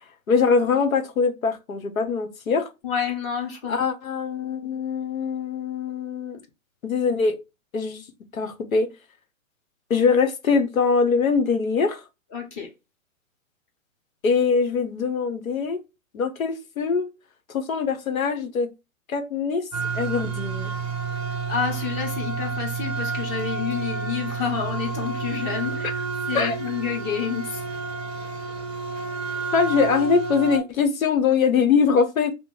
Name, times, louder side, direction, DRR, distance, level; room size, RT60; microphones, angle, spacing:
voice 1, 0.3-2.7 3.7-6.4 6.8-7.4 7.7-8.0 8.3-8.9 9.9-12.0 14.2-15.8 16.1-17.1 17.5-18.7 19.1-19.7 19.9-20.7 25.8-25.9 26.3-26.6 29.5-32.3, left 5 dB, 90° left, 0.9 m, -22 dB
voice 2, 2.8-3.8 12.3-12.7 21.5-25.9 26.3-27.6, left 7 dB, 25° left, 0.8 m, -29 dB
sound 1, 19.7-30.6, right 4 dB, 25° right, 0.5 m, -30 dB
2.9 x 2.0 x 3.7 m
hypercardioid pair, 135°, 40 cm